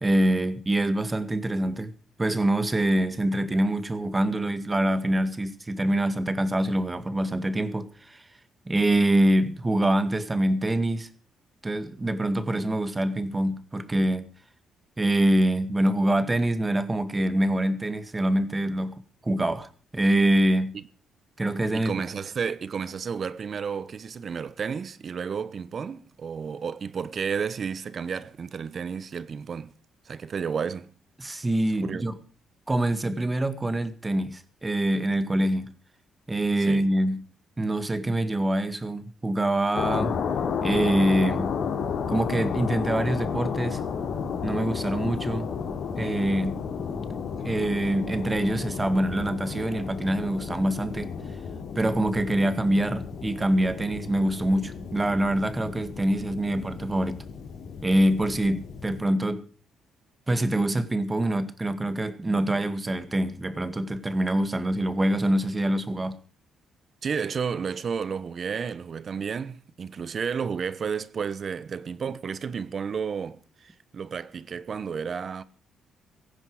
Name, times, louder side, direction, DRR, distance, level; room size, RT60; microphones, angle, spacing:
voice 1, 0.0-1.9 2.2-8.3 8.7-11.1 11.6-14.3 15.0-20.7 21.4-21.9 31.2-32.1 32.7-35.7 36.3-37.2 37.6-40.1 40.6-41.5 42.1-43.8 44.4-45.5 45.9-46.6 47.4-51.1 51.8-57.2 57.8-59.5 60.3-66.2, right 1 dB, 20° right, 1.9 m, -25 dB
voice 2, 21.7-29.7 30.0-30.9 31.8-32.1 36.6-36.9 67.0-75.4, right 6 dB, 50° right, 1.0 m, -32 dB
sound 1, 39.7-59.0, left 6 dB, 65° left, 3.7 m, -32 dB
17.0 x 15.0 x 4.9 m
cardioid pair, 90°, 0 cm